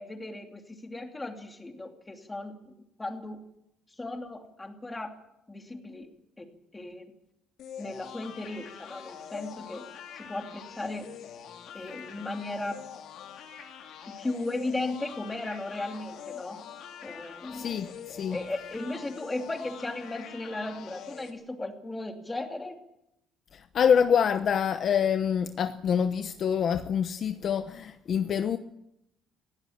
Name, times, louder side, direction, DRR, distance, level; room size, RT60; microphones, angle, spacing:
voice 1, 0.0-3.4 3.9-5.1 5.5-6.1 6.4-6.5 6.7-7.1 7.8-9.9 10.1-11.1 11.7-12.8 14.2-16.6 17.0-17.8 18.3-22.8, left 2 dB, 15° left, 2.8 m, -36 dB
sound 1, 7.6-21.3, left 8 dB, 65° left, 3.5 m, -45 dB
voice 2, 17.5-18.4 23.7-28.6, left 7 dB, 45° left, 0.9 m, -26 dB
19.0 x 17.0 x 8.8 m
cardioid pair, 140°, 0 cm